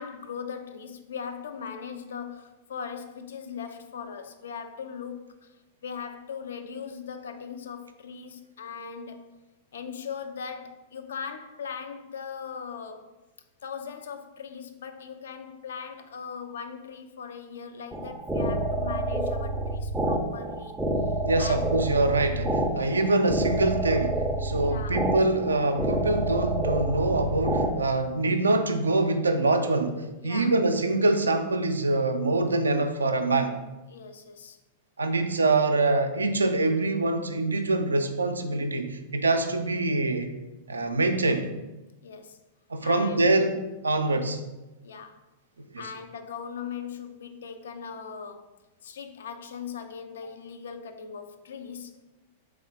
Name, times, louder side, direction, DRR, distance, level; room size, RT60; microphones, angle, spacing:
voice 1, 0.0-5.6 5.8-9.3 9.7-13.2 13.6-21.8 24.6-25.1 30.2-30.6 33.9-34.6 42.0-42.4 42.8-43.3 44.0-44.1 44.8-45.2 45.8-52.0, left 6 dB, 65° left, 8 dB, 0.4 m, -39 dB
sound 1, 17.9-27.7, right 1 dB, 5° right, 0.4 m, -28 dB
voice 2, 21.2-33.5 35.0-40.3 40.7-41.5 42.7-43.6 43.8-44.4 45.7-45.9, right 2 dB, 75° right, 7 dB, 0.3 m, -25 dB
3.6 x 3.3 x 3.4 m, 1.0 s
figure-of-eight pair, 95°, 0 cm